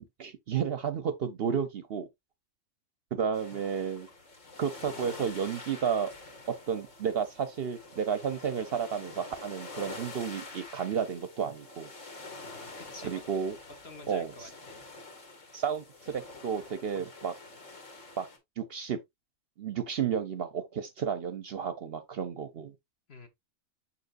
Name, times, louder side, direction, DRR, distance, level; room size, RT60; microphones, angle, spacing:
voice 1, 0.2-2.1 3.1-4.1 4.6-6.1 6.5-11.9 13.0-13.5 14.1-14.5 15.5-17.3 18.2-18.3 18.6-19.0 19.6-22.7, right 7 dB, 55° right, 0.8 m, -32 dB
sound 1, 3.3-18.4, left 2 dB, 70° left, 2.4 m, -47 dB
voice 2, 12.4-13.2 13.8-14.8 23.1-23.3, left 3 dB, 50° left, 1.3 m, -49 dB
6.8 x 5.6 x 2.5 m
omnidirectional pair, 1.4 m